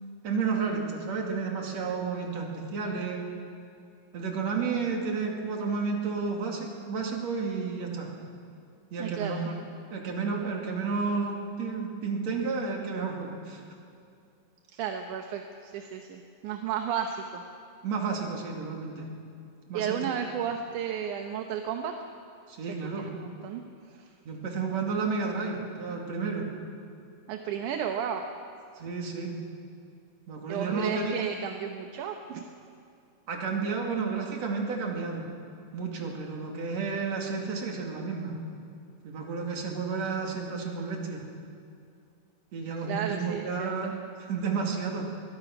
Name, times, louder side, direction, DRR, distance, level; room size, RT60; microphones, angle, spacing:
voice 1, 0.2-3.3 4.1-8.1 8.9-9.5 9.9-13.6 17.8-19.1 19.7-20.0 22.5-23.1 24.3-26.5 28.8-29.3 30.3-31.1 33.3-35.3 35.7-38.4 39.0-41.2 42.5-45.1, right 5 dB, 50° right, 0 dB, 3.5 m, -31 dB
voice 2, 9.0-9.3 14.7-17.4 19.7-22.0 23.0-23.6 27.3-28.2 30.5-32.4 42.7-43.9, right 8 dB, 70° right, 4 dB, 2.2 m, -33 dB
22.5 x 21.0 x 6.0 m, 2.5 s
omnidirectional pair, 4.2 m